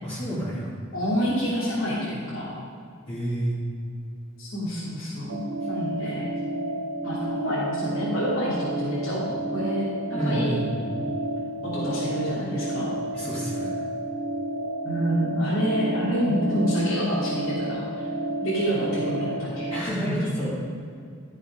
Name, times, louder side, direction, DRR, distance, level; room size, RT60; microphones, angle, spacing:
voice 1, 0.0-0.7 3.1-3.6 10.1-10.9 13.1-13.7 19.7-20.5, right 1 dB, 30° left, -11 dB, 2.7 m, -29 dB
voice 2, 0.9-2.4 4.4-6.3 7.0-9.2 9.5-9.8 10.2-10.6 11.6-12.9 14.8-18.1 18.4-19.7 20.0-20.2, equal, 75° left, -9 dB, 2.9 m, -27 dB
sound 1, 5.3-19.8, right 1 dB, 70° right, 0.8 m, -31 dB
14.0 x 6.6 x 5.3 m, 2.3 s
head